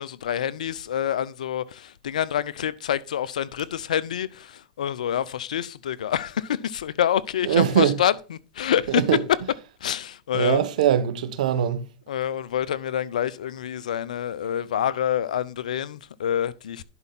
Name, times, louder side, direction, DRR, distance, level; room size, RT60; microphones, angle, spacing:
voice 1, 0.0-9.0 9.3-9.4 9.8-10.7 12.1-16.8, left 10 dB, 90° left, 0.7 m, -27 dB
voice 2, 7.5-7.9 9.1-9.2 10.3-11.8, right 10 dB, 80° right, 1.1 m, -21 dB
11.0 x 5.5 x 4.1 m
hypercardioid pair, 110°, 4 cm